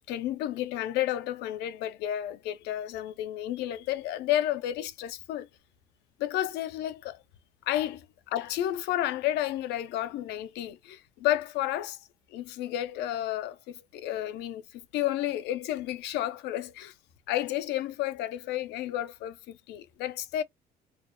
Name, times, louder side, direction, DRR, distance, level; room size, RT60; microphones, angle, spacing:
voice 1, 0.1-5.5 6.2-7.2 7.7-12.0 12.3-16.9 17.3-20.4, left 13 dB, 85° left, 0.4 m, -31 dB
2.4 x 2.1 x 2.5 m
cardioid pair, 110°, 17 cm